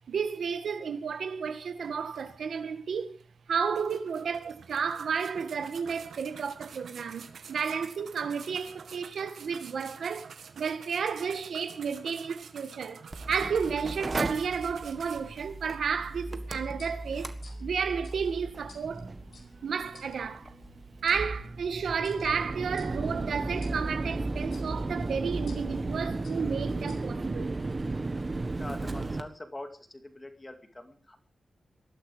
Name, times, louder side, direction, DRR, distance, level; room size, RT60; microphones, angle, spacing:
voice 1, 0.1-3.2 3.5-10.3 10.6-17.3 17.6-19.1 19.6-20.5 21.0-27.6, right 6 dB, 75° right, 1.9 m, -32 dB
sound 1, 1.4-1.5 1.8-2.8 3.2-3.3 3.7-15.2, right 6 dB, 90° right, 2.1 m, -49 dB
Mechanical fan, 13.1-29.2, right 2 dB, 25° right, 1.5 m, -35 dB
sound 2, 15.8-27.5, left 3 dB, 65° left, 4.8 m, -55 dB
voice 2, 28.5-31.2, left 1 dB, 15° left, 2.2 m, -43 dB
20.0 x 13.5 x 5.1 m
wide cardioid pair, 175°, 0 cm